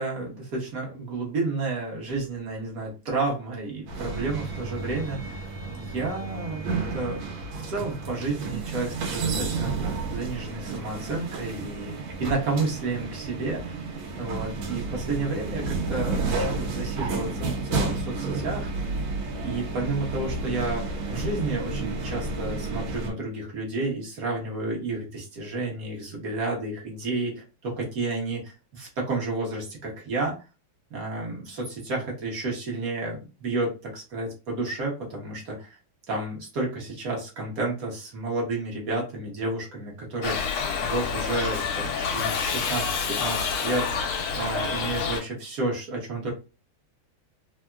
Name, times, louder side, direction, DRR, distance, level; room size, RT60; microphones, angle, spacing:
voice 1, 0.0-5.5 5.8-7.2 7.7-9.7 10.1-13.7 14.2-18.7 19.4-30.4 30.9-35.8 36.1-40.4 40.8-43.9 44.4-46.3, right 3 dB, 50° right, -2 dB, 1.3 m, -31 dB
sound 1, 3.9-23.1, right 3 dB, 80° right, 1.6 m, -31 dB
Shout / Livestock farm animals working animals, 40.2-45.2, left 5 dB, 85° left, 1.5 m, -28 dB
3.8 x 2.1 x 2.2 m, 0.30 s
omnidirectional pair, 2.3 m